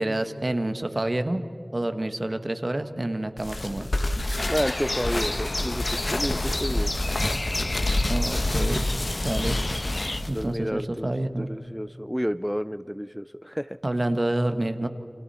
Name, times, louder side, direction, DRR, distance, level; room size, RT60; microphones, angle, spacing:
voice 1, 0.0-1.4 1.7-3.9 8.1-9.6 10.3-11.5 13.8-14.9, right 1 dB, 50° right, 8 dB, 1.3 m, -28 dB
sound 1, 3.4-10.4, left 1 dB, 75° left, 1.3 m, -28 dB
sound 2, 4.4-10.2, left 2 dB, 60° left, 1.1 m, -32 dB
voice 2, 4.5-6.9 10.3-11.1 11.4-13.8, equal, ahead, 13 dB, 0.4 m, -30 dB
29.5 x 26.0 x 4.3 m, 2.8 s
wide cardioid pair, 50°, 0 cm